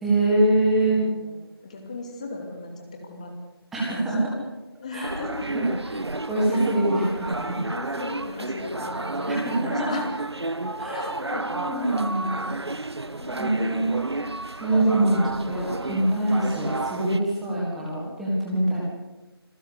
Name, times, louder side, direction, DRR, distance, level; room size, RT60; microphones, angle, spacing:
voice 1, 0.0-1.0 3.7-4.3 4.9-5.2 5.5-6.0 6.3-7.7 9.3-9.9 10.8-11.1 11.5-12.5 13.4-14.1 14.5-18.8, right 1 dB, ahead, -6 dB, 1.6 m, -24 dB
voice 2, 1.0-3.3 3.9-4.1 4.8-5.4 6.5-6.6 7.7-10.1 10.9-11.5 13.2-13.7, left 3 dB, 15° left, 3 dB, 2.6 m, -37 dB
sound 1, 5.0-17.2, right 2 dB, 85° right, 1.7 m, -31 dB
26.0 x 15.0 x 8.2 m, 1.1 s
figure-of-eight pair, 175°, 13 cm